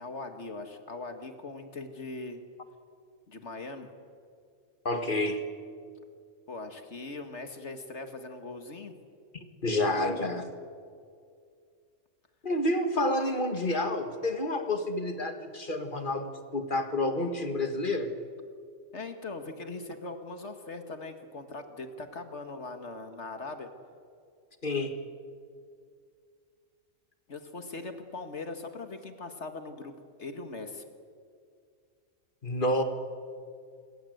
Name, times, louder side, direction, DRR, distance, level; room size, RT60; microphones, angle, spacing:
voice 1, 0.0-2.4 3.3-3.9 6.5-9.0 18.9-23.7 27.3-30.8, left 3 dB, 60° left, 7 dB, 2.0 m, -40 dB
voice 2, 4.9-5.4 9.3-10.5 12.4-18.1 24.6-25.0 32.4-32.8, left 1 dB, 40° left, 7 dB, 2.0 m, -29 dB
27.5 x 23.0 x 7.9 m, 2.3 s
omnidirectional pair, 1.3 m